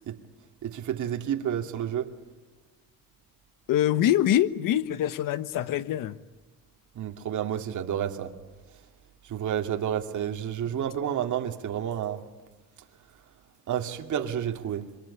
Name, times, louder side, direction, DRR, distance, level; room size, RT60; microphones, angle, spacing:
voice 1, 0.6-2.1 6.9-8.3 9.2-12.3 13.7-14.9, right 9 dB, 60° right, 2.5 m, -30 dB
voice 2, 3.7-6.2 10.6-10.9, left 11 dB, 75° left, 1.3 m, -25 dB
26.5 x 23.5 x 8.5 m
cardioid pair, 95°, 33 cm